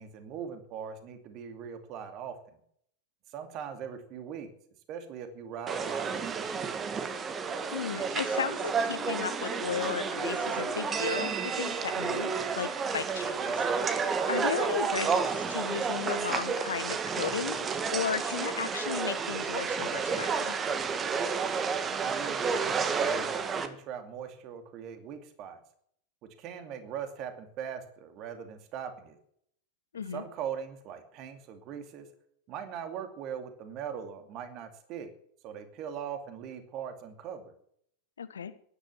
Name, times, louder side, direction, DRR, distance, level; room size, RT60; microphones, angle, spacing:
voice 1, 0.0-2.6 3.3-4.5 4.9-6.8 12.9-13.3 21.7-25.6 26.4-29.2 30.1-32.1 32.5-35.1 35.4-37.5, right 8 dB, 40° right, 8 dB, 2.5 m, -41 dB
sound 1, 5.7-23.7, right 5 dB, 20° right, 1.6 m, -31 dB
sound 2, 7.5-13.2, left 8 dB, 25° left, 2.2 m, -48 dB
voice 2, 7.7-20.6 29.9-30.2 38.2-38.5, left 7 dB, 70° left, 14 dB, 1.3 m, -35 dB
16.0 x 11.0 x 7.3 m, 0.67 s
figure-of-eight pair, 90°, 0 cm